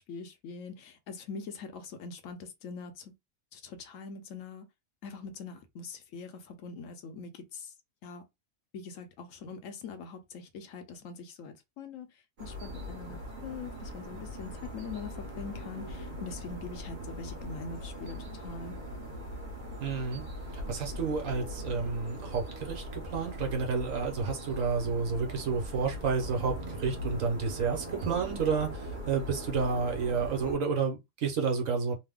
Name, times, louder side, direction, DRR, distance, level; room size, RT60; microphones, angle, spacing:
voice 1, 0.0-3.1 3.5-4.7 5.0-7.7 8.0-8.2 8.7-12.1 12.4-18.8, left 5 dB, 75° left, 1.1 m, -43 dB
sound 1, 12.4-30.6, equal, 40° right, 0.9 m, -40 dB
voice 2, 19.8-20.2 20.7-32.0, right 5 dB, 75° right, 1.3 m, -30 dB
3.2 x 2.0 x 3.5 m
omnidirectional pair, 1.4 m